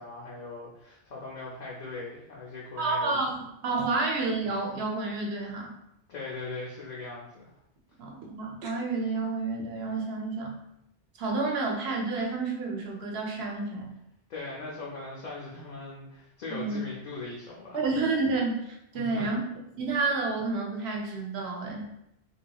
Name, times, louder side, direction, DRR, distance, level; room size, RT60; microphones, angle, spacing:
voice 1, 0.0-3.2 6.1-7.5 14.3-17.8 18.9-19.3, left 3 dB, 50° left, -5 dB, 0.6 m, -40 dB
voice 2, 2.8-5.7 8.0-10.6 11.2-13.9 16.5-16.8 17.7-19.4 19.8-21.9, right 3 dB, 90° right, -1 dB, 0.9 m, -30 dB
3.3 x 2.8 x 2.3 m, 0.82 s
omnidirectional pair, 1.1 m